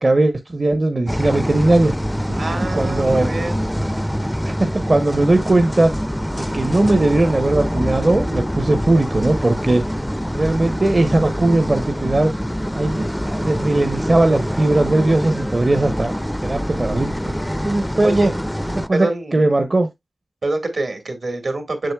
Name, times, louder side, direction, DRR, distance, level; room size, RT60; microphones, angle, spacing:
voice 1, 0.0-1.9 2.7-3.4 4.4-5.9 6.3-9.8 10.3-12.3 12.7-16.2 16.4-17.3 17.6-18.3 18.7-19.9, right 2 dB, 45° right, 0.8 m, -18 dB
sound 1, 1.1-18.9, equal, 5° left, 0.4 m, -25 dB
voice 2, 2.4-3.7 18.0-18.3 18.9-19.4 20.4-21.9, right 2 dB, 70° right, 1.9 m, -25 dB
7.6 x 6.3 x 2.2 m
wide cardioid pair, 65°, 0 cm